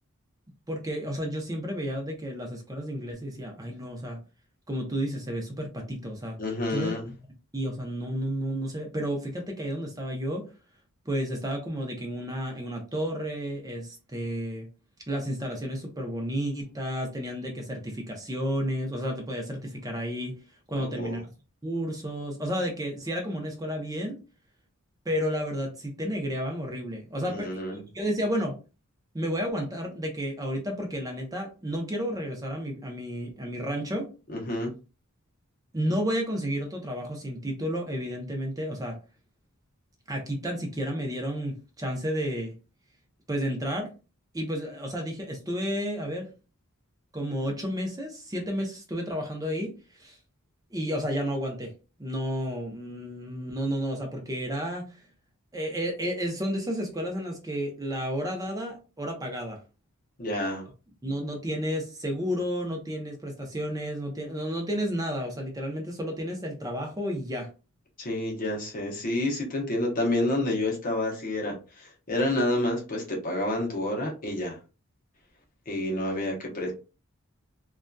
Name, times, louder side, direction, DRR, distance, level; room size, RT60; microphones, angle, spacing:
voice 1, 0.7-4.2 4.7-6.4 6.7-7.0 7.5-10.4 11.1-14.7 15.1-20.4 20.7-21.2 21.6-24.2 25.1-27.6 27.9-28.6 29.1-34.1 35.7-39.0 40.1-42.5 43.3-43.9 44.3-46.3 47.1-49.7 50.0-50.2 50.7-51.7 52.0-54.8 55.5-59.6 61.0-67.5, equal, 15° right, 2 dB, 0.6 m, -31 dB
voice 2, 6.4-7.0 20.7-21.2 27.2-27.8 34.3-34.7 60.2-60.6 68.0-74.6 75.7-76.7, left 1 dB, 40° left, -1 dB, 0.7 m, -29 dB
2.6 x 2.3 x 2.2 m, 0.32 s
head